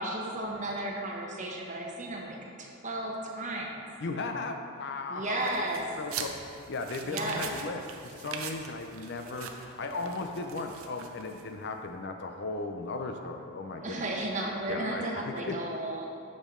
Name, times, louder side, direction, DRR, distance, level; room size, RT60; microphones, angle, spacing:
voice 1, 0.0-3.9 5.1-5.8 7.0-7.5 13.8-16.1, right 1 dB, 35° right, -1 dB, 0.9 m, -34 dB
voice 2, 4.0-5.7 6.0-14.0 14.7-15.6, left 3 dB, 50° left, 5 dB, 0.5 m, -36 dB
sound 1, 5.4-11.6, right 6 dB, 80° right, 0.6 m, -42 dB
8.5 x 6.4 x 3.7 m, 2.4 s
head